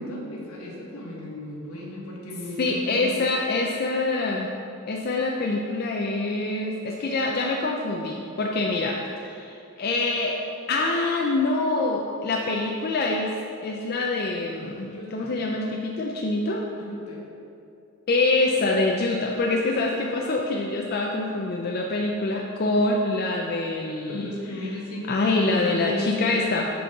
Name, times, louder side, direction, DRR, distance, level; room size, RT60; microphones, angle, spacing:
voice 1, 0.0-3.2 14.9-15.5 16.8-17.2 24.1-26.3, left 2 dB, 80° left, -3 dB, 1.4 m, -35 dB
voice 2, 2.6-4.5 4.9-10.4 10.7-13.3 13.6-16.6 18.1-24.3 25.1-26.7, left 2 dB, 45° left, 0 dB, 0.4 m, -25 dB
6.0 x 5.4 x 4.7 m, 2.6 s
head